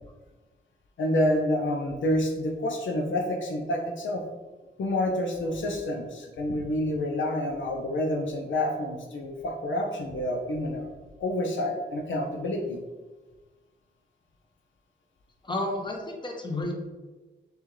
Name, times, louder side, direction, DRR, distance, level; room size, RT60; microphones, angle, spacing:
voice 1, 1.0-4.2 4.8-10.9 11.2-12.8, left 1 dB, 85° left, 2 dB, 0.6 m, -28 dB
voice 2, 15.4-16.7, left 2 dB, 25° left, 1 dB, 0.8 m, -31 dB
6.3 x 2.4 x 3.1 m, 1.2 s
cardioid pair, 80°, 19 cm